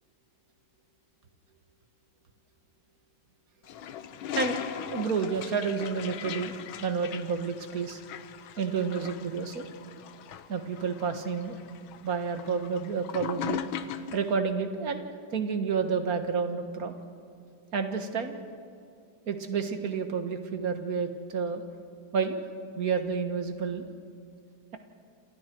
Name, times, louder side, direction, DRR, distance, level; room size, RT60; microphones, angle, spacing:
Toilet flush, 3.6-14.3, left 9 dB, 85° left, 1.7 m, -39 dB
voice 1, 4.4-6.5 6.8-8.0 8.6-9.7 10.5-11.6 12.0-13.6 14.1-15.1 15.3-16.9 17.7-18.4 19.3-21.6 22.1-22.4 22.8-23.9, right 5 dB, 45° right, 6 dB, 1.9 m, -30 dB
28.0 x 27.5 x 4.6 m, 2.4 s
omnidirectional pair, 2.2 m